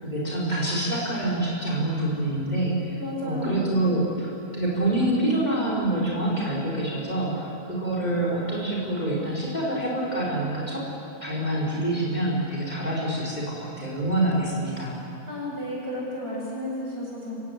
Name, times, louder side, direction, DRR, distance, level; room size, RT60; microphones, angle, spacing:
voice 1, 0.0-10.9 11.2-15.0, right 1 dB, 30° left, -4 dB, 5.3 m, -26 dB
voice 2, 3.0-3.8 15.3-17.3, left 1 dB, 40° right, -5 dB, 8.3 m, -32 dB
30.0 x 16.5 x 9.9 m, 2.8 s
omnidirectional pair, 1.5 m